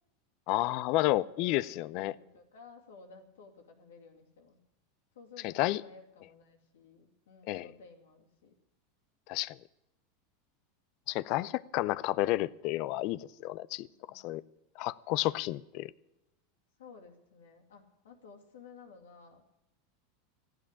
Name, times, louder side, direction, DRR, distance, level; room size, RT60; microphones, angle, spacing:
voice 1, 0.5-2.1 5.4-5.8 7.5-7.7 9.3-9.6 11.1-13.9 14.2-14.4 14.8-15.9, left 17 dB, 55° left, 0.5 m, -31 dB
voice 2, 1.1-4.6 5.1-8.5 13.9-14.3 16.8-19.4, left 4 dB, 85° left, 2.6 m, -54 dB
15.0 x 9.1 x 9.8 m
hypercardioid pair, 115°, 0 cm